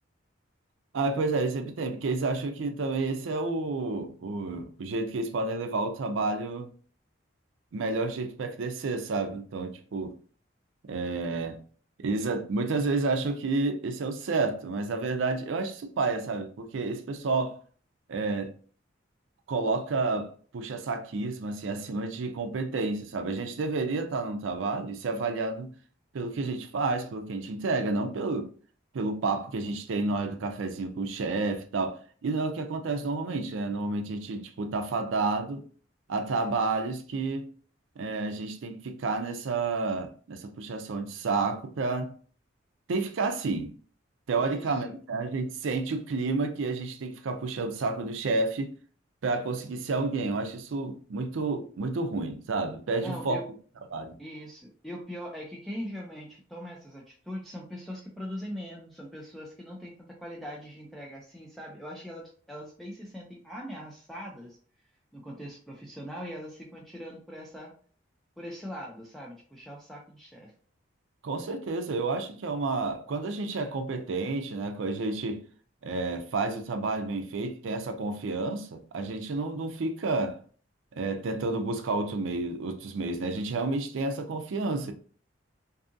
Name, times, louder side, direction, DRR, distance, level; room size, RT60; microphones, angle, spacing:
voice 1, 0.9-6.7 7.7-10.1 10.9-11.6 12.0-17.5 18.1-18.5 19.5-25.7 26.1-28.5 28.9-35.6 36.1-37.5 38.0-42.2 42.9-43.7 44.3-48.7 49.2-53.4 53.9-54.1 71.2-75.4 75.8-80.4 81.0-84.9, right 3 dB, 80° right, 0.4 m, -30 dB
voice 2, 44.4-44.9 53.0-53.4 54.2-64.6 65.1-67.7 68.4-70.5, equal, ahead, 0.3 m, -41 dB
2.6 x 2.4 x 2.5 m
head